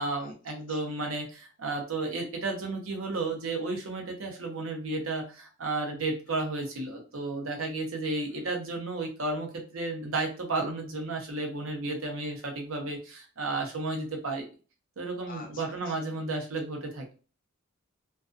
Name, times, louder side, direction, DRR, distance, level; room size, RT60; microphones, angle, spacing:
voice 1, 0.0-14.4 15.0-17.1, right 2 dB, 85° right, 2 dB, 0.7 m, -33 dB
voice 2, 15.3-16.2, left 3 dB, 40° left, 1 dB, 0.6 m, -49 dB
2.3 x 2.3 x 2.5 m, 0.36 s
head